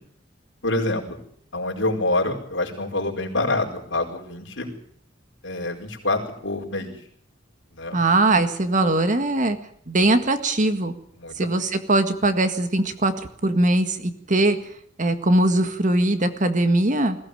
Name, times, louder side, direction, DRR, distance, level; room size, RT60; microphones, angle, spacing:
voice 1, 0.6-1.2 1.5-4.7 5.4-6.9 7.7-8.0 11.2-11.3, left 2 dB, 65° left, 1 dB, 4.9 m, -26 dB
voice 2, 7.9-9.6 9.9-10.9 11.4-13.1 13.4-14.6 15.0-17.2, right 2 dB, 40° right, 9 dB, 1.8 m, -20 dB
21.0 x 16.0 x 9.2 m, 0.66 s
head